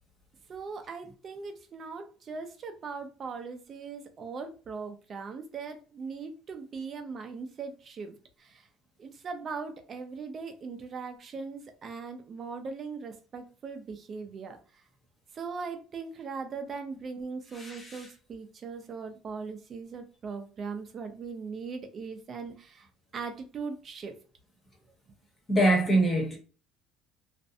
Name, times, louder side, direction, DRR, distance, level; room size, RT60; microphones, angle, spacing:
voice 1, 0.5-8.6 9.0-14.6 15.3-22.9 23.1-24.1, right 5 dB, 35° right, 0.5 m, -39 dB
voice 2, 17.5-18.1 25.5-26.4, right 1 dB, 20° left, 0.9 m, -24 dB
2.5 x 2.1 x 2.6 m
cardioid pair, 135°, 0 cm